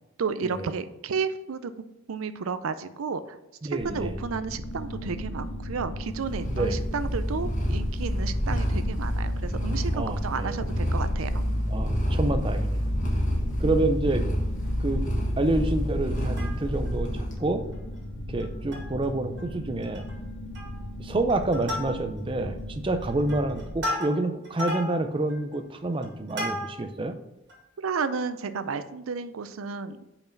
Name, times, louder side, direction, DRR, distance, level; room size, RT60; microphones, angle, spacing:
voice 1, 0.2-1.7 2.1-3.4 3.7-11.4 27.8-30.0, right 5 dB, 75° right, 12 dB, 0.5 m, -32 dB
voice 2, 3.6-4.1 6.5-6.8 9.9-10.6 11.7-12.8 13.6-14.2 14.8-15.0 15.4-17.6 18.3-20.1 21.0-27.1, right 2 dB, 25° right, 8 dB, 0.5 m, -28 dB
sound 1, 3.8-23.7, left 1 dB, 60° left, 1.0 m, -37 dB
Purr, 6.1-17.4, equal, 35° left, 1.6 m, -28 dB
Plucked string instrument, 16.1-17.0 17.4-17.5 17.7-17.9 18.4-19.1 19.4-19.5 19.8-20.2 20.5-20.9 21.3-22.3 22.9-27.0 27.5-27.6, left 1 dB, 55° right, 2.2 m, -35 dB
5.4 x 4.6 x 5.8 m, 0.91 s
head